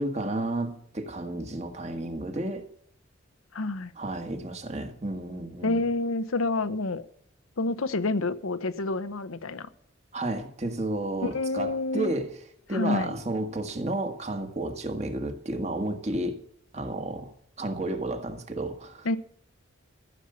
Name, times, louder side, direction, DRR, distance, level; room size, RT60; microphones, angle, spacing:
voice 1, 0.0-2.7 4.0-5.8 10.1-12.3 12.7-16.4 16.7-17.3 17.6-19.1, right 1 dB, 35° right, 1.6 m, -32 dB
voice 2, 3.5-3.9 5.6-7.1 7.6-9.7 11.2-12.1 12.7-13.2 19.0-19.2, left 2 dB, 85° left, 0.9 m, -28 dB
14.5 x 8.0 x 6.9 m
head